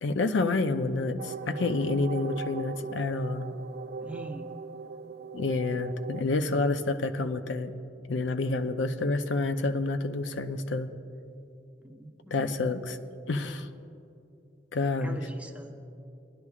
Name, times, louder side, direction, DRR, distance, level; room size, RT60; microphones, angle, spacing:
voice 1, 0.0-3.6 5.3-7.7 8.1-10.9 12.3-13.0 13.3-13.7 14.7-15.2, left 3 dB, 75° left, 8 dB, 0.5 m, -28 dB
sound 1, 1.2-6.2, right 5 dB, 60° right, 0.4 m, -39 dB
voice 2, 4.0-4.5 5.7-5.8 11.8-12.4 15.0-15.7, right 2 dB, 10° right, 3 dB, 0.7 m, -43 dB
20.0 x 11.0 x 2.4 m, 2.7 s
head